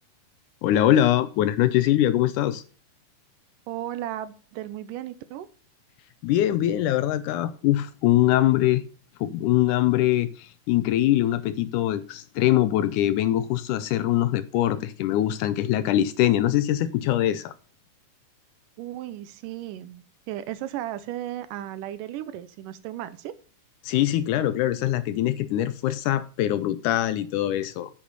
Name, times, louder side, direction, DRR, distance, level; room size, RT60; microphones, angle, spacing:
voice 1, 0.6-2.6 6.2-8.8 9.2-17.5 23.8-27.9, left 13 dB, 80° left, 13 dB, 2.0 m, -23 dB
voice 2, 3.7-5.5 18.8-23.3, right 13 dB, 85° right, 14 dB, 2.2 m, -35 dB
8.6 x 5.8 x 6.7 m, 0.38 s
omnidirectional pair, 3.9 m